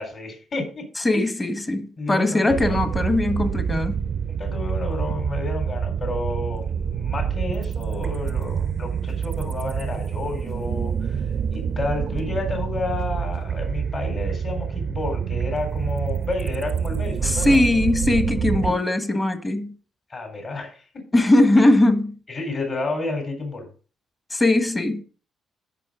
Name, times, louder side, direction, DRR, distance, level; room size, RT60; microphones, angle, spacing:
voice 1, 0.0-0.9 1.1-1.3 2.0-2.8 4.4-11.2 11.5-17.6 18.6-18.8 20.1-21.1 21.6-21.7 22.3-23.7, left 3 dB, 45° left, 4.1 m, -30 dB
voice 2, 1.0-4.0 17.2-19.7 21.1-22.1 24.3-25.0, left 1 dB, 20° left, 1.5 m, -20 dB
sound 1, 2.5-18.7, right 7 dB, 55° right, 0.6 m, -27 dB
13.5 x 5.4 x 3.8 m
cardioid pair, 90°, 0 cm